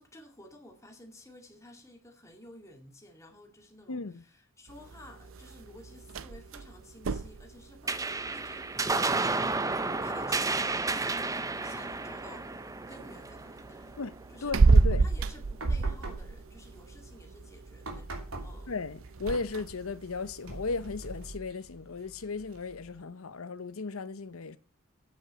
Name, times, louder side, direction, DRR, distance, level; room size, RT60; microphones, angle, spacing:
voice 1, 0.0-9.7 10.0-12.5 12.9-14.0 14.3-14.5 15.0-18.7, left 1 dB, 15° left, 2.2 m, -53 dB
voice 2, 3.9-4.2 14.0-14.1 14.4-15.1 18.7-24.6, left 4 dB, 85° left, 0.8 m, -36 dB
sound 1, 4.7-21.4, right 3 dB, 65° right, 0.6 m, -32 dB
sound 2, 7.9-14.6, right 3 dB, 15° right, 0.6 m, -32 dB
sound 3, 15.5-23.0, right 2 dB, 90° right, 2.8 m, -46 dB
8.5 x 7.4 x 7.4 m
head